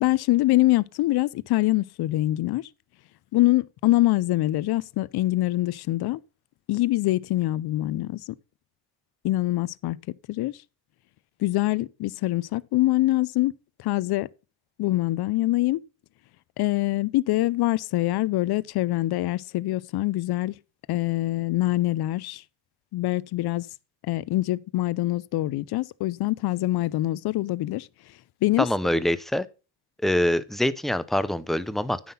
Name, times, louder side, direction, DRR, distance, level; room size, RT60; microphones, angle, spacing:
voice 1, 0.0-2.7 3.3-6.2 6.7-8.4 9.2-10.0 10.3-10.5 11.4-13.5 13.8-14.3 14.8-15.8 16.6-20.5 20.9-22.4 22.9-23.7 24.1-27.9 28.4-28.7, left 17 dB, 55° left, 0.5 m, -24 dB
voice 2, 28.6-29.5 30.0-32.0, left 1 dB, ahead, 0.5 m, -24 dB
9.5 x 5.8 x 5.6 m
cardioid pair, 115°, 46 cm